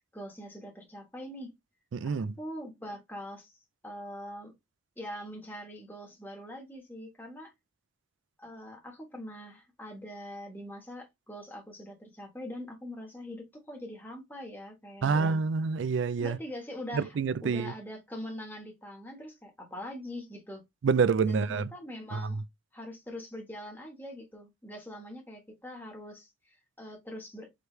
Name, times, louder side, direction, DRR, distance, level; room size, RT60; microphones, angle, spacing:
voice 1, 0.1-1.5 2.0-4.5 5.0-7.5 8.4-15.4 16.2-17.2 17.4-20.6 21.2-22.4 22.7-27.5, equal, 10° left, 1.2 m, -43 dB
voice 2, 1.9-2.3 15.0-16.4 16.9-17.7 20.8-21.7 22.1-22.3, right 5 dB, 60° right, 0.4 m, -27 dB
4.9 x 3.2 x 3.1 m
head